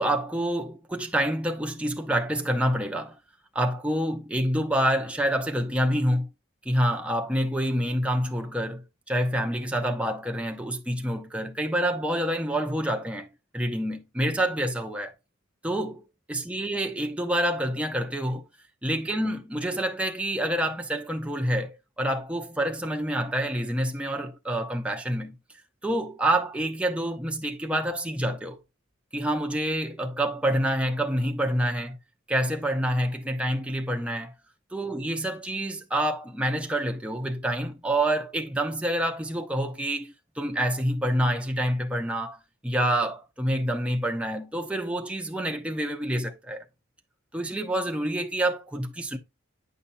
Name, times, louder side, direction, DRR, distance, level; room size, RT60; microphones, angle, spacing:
voice 1, 0.0-3.2 3.5-6.3 6.7-13.3 13.5-15.1 15.6-16.0 16.3-18.4 18.8-25.4 25.8-28.6 29.1-32.0 32.3-34.3 34.7-42.4 42.6-46.6 47.3-49.2, right 1 dB, 5° right, 0.6 m, -27 dB
9.1 x 5.6 x 2.5 m
head